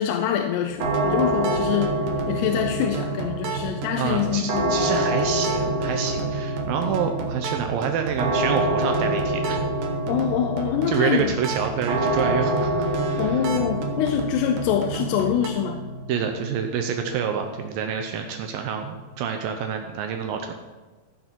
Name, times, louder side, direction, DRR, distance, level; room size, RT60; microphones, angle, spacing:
voice 1, 0.0-4.8 10.1-11.3 13.2-15.9, left 9 dB, 80° left, 4 dB, 2.7 m, -25 dB
sound 1, 0.7-15.5, right 6 dB, 70° right, 2.7 m, -34 dB
sound 2, 0.8-19.7, right 1 dB, 50° right, 2.3 m, -28 dB
voice 2, 4.0-9.6 10.9-13.4 16.1-20.5, right 7 dB, 85° right, 5 dB, 2.0 m, -27 dB
14.5 x 6.7 x 4.5 m, 1.3 s
omnidirectional pair, 5.1 m